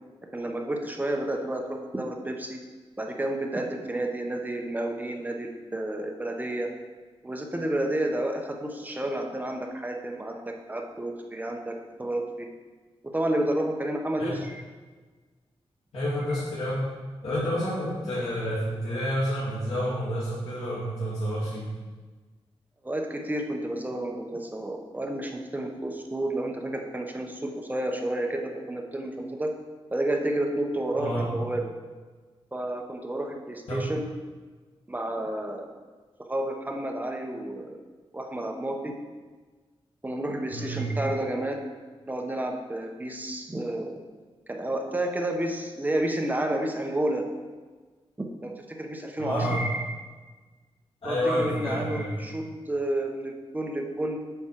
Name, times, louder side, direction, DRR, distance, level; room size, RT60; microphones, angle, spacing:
voice 1, 0.3-2.6 3.0-6.7 7.2-10.4 10.7-12.5 13.1-14.6 16.3-16.4 22.8-29.5 29.9-31.7 32.5-34.1 34.9-35.7 36.3-37.8 38.1-38.9 40.0-41.7 42.1-44.0 44.5-47.2 48.2-50.0 51.0-54.2, right 1 dB, 15° right, 2 dB, 0.8 m, -30 dB
voice 2, 15.9-16.9 17.2-21.7 30.9-31.3 33.7-33.8 40.5-40.9 49.2-49.6 51.0-52.1, equal, 70° left, -12 dB, 2.7 m, -29 dB
8.0 x 6.2 x 4.5 m, 1.4 s
wide cardioid pair, 145°, 11 cm